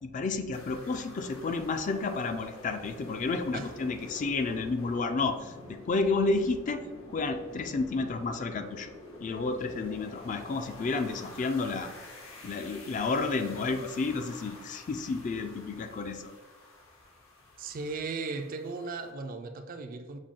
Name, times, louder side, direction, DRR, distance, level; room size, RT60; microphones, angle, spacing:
voice 1, 0.0-6.8 7.1-8.9 9.2-11.9 12.4-16.3, left 3 dB, 40° left, 0.3 m, -31 dB
sound 1, 0.5-19.1, left 1 dB, 85° left, 1.1 m, -48 dB
voice 2, 17.6-20.2, right 4 dB, 45° right, 0.4 m, -37 dB
6.2 x 2.2 x 3.7 m
head